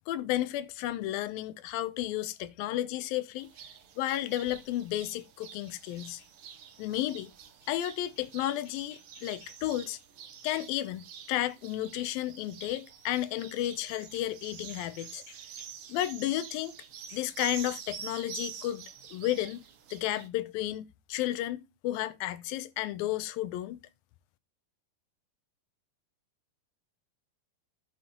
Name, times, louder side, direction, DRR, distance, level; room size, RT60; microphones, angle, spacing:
voice 1, 0.1-3.5 4.0-6.2 6.8-7.3 7.7-10.0 10.4-15.4 15.9-16.8 17.1-18.8 19.1-19.6 19.9-23.8, left 14 dB, 85° left, 2.5 m, -32 dB
sound 1, 3.4-20.3, right 8 dB, 75° right, 1.2 m, -47 dB
9.7 x 6.1 x 4.3 m
omnidirectional pair, 4.2 m